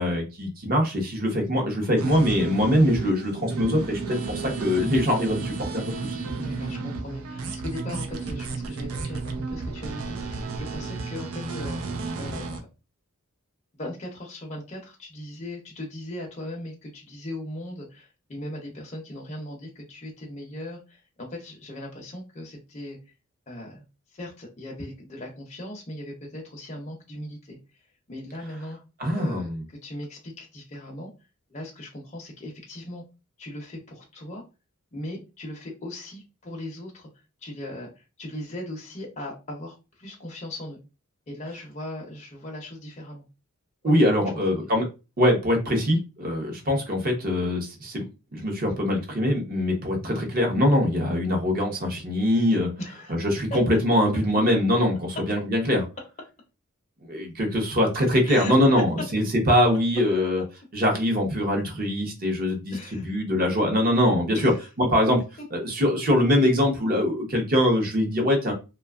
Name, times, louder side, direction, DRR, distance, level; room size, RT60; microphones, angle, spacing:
voice 1, 0.0-6.2 29.0-29.6 43.8-44.8 45.2-48.0 48.3-52.7 53.1-55.8 57.0-60.4 60.7-64.5 64.8-65.2 65.5-68.5, left 1 dB, 40° right, 2 dB, 0.7 m, -23 dB
sound 1, 2.0-12.6, right 3 dB, 80° right, 0.5 m, -32 dB
voice 2, 6.4-12.7 13.7-23.0 23.5-23.8 24.1-27.6 28.1-28.8 29.1-31.1 31.5-33.0 33.4-34.4 34.9-37.1 37.4-40.8 41.3-43.2 44.6-44.7 52.8-53.1 53.5-53.6 58.3-58.5 62.7-63.1 64.3-64.6, left 1 dB, 30° left, -1 dB, 0.6 m, -38 dB
2.7 x 2.3 x 2.3 m, 0.29 s
head